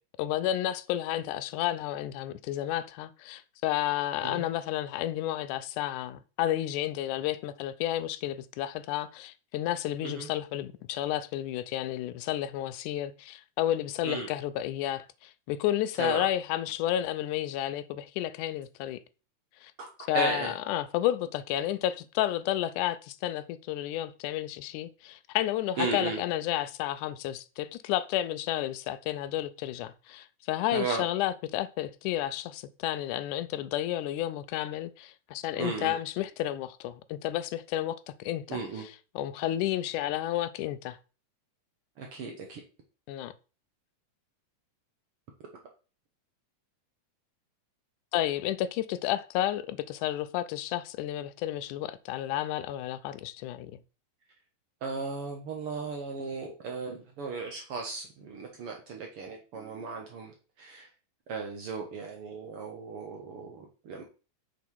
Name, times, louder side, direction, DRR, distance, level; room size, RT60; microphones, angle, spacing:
voice 1, 0.2-19.0 19.6-19.7 20.1-38.6 39.2-41.0 43.1-43.3 48.1-53.8, left 13 dB, 85° left, 2.1 m, -31 dB
voice 2, 20.1-20.5 25.8-26.2 30.7-31.1 35.6-36.0 38.5-38.9 42.0-42.6 54.8-60.9 61.3-64.0, right 4 dB, 65° right, 1.5 m, -35 dB
7.1 x 4.1 x 4.6 m
omnidirectional pair, 3.5 m